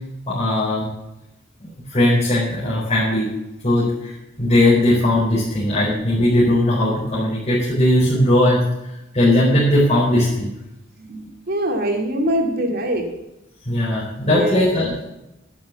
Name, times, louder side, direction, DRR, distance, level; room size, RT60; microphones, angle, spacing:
voice 1, 0.3-0.9 1.6-3.3 3.6-8.6 9.1-10.5 13.6-14.9, left 1 dB, 35° left, -9 dB, 4.5 m, -18 dB
voice 2, 11.0-13.1 14.3-14.7, right 1 dB, 55° right, 2 dB, 2.5 m, -23 dB
11.5 x 7.7 x 8.4 m, 0.91 s
head